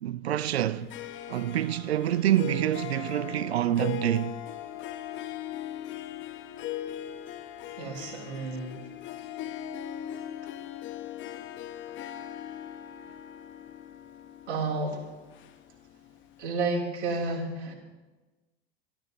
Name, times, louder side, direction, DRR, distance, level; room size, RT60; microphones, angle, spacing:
voice 1, 0.0-0.9 1.3-4.4, right 12 dB, 75° right, 0.6 m, -27 dB
Harp, 0.7-16.1, left 11 dB, 40° left, 1.1 m, -40 dB
voice 2, 7.8-8.8 14.5-15.0 16.4-17.7, right 3 dB, 60° right, 3.5 m, -31 dB
24.0 x 13.0 x 3.0 m
figure-of-eight pair, 80°, 31 cm